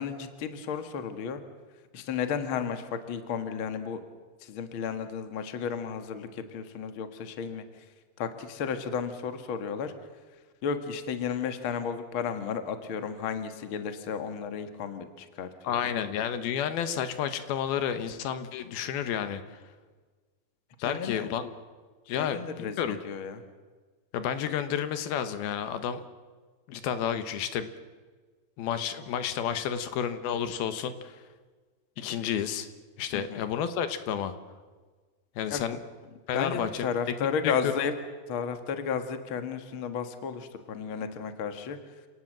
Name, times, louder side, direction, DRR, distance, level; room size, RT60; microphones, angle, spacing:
voice 1, 0.0-1.4 1.9-4.0 4.4-7.6 8.2-9.9 10.6-15.8 20.8-21.3 22.2-23.4 33.1-33.4 35.5-35.6 36.3-37.9 38.3-41.8, left 6 dB, 45° left, 8 dB, 1.9 m, -33 dB
voice 2, 15.6-19.4 20.8-21.5 22.1-23.0 24.1-26.0 26.7-27.7 28.6-31.2 32.0-32.7 33.0-34.3 35.4-35.8 36.3-36.9 37.2-37.7, left 9 dB, 85° left, 10 dB, 3.1 m, -31 dB
29.0 x 18.5 x 7.6 m, 1.4 s
omnidirectional pair, 4.3 m